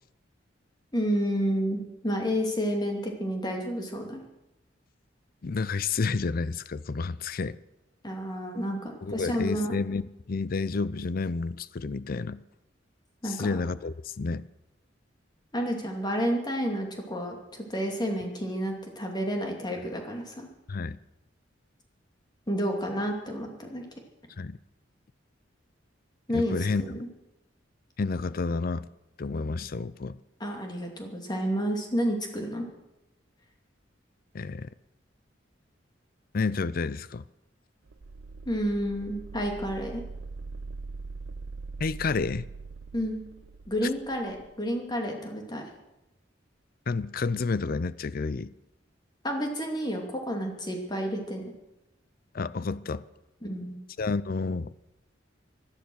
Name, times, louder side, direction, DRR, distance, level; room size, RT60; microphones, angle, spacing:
voice 1, 0.9-4.2 8.0-9.7 13.2-13.6 15.5-20.5 22.5-23.8 26.3-27.1 30.4-32.7 38.5-40.0 42.9-43.2 43.7-45.6 49.2-51.4 53.4-53.8, equal, 25° left, 2.6 m, -30 dB
voice 2, 5.4-7.6 9.0-12.4 13.2-14.4 20.7-21.0 24.4-24.6 26.3-27.0 28.0-28.9 29.2-30.2 34.3-34.7 36.3-37.2 41.8-42.5 46.9-48.5 52.3-53.0 54.0-54.7, left 4 dB, 50° left, 0.5 m, -30 dB
sound 1, 37.9-44.5, right 3 dB, 70° right, 0.6 m, -42 dB
17.0 x 12.0 x 6.4 m
head